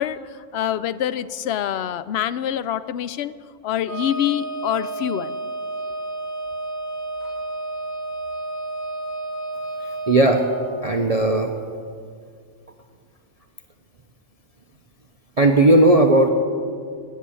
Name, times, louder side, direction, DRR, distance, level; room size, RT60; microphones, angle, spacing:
voice 1, 0.0-3.4 3.6-5.4, left 10 dB, 65° left, 15 dB, 0.7 m, -25 dB
Wind instrument woodwind instrument, 3.8-10.6, right 2 dB, 80° left, 4.3 m, -31 dB
voice 2, 10.1-10.4 10.8-11.5 15.4-16.3, right 2 dB, 35° right, 4 dB, 0.7 m, -16 dB
16.5 x 7.5 x 9.9 m, 2.2 s
omnidirectional pair, 1.4 m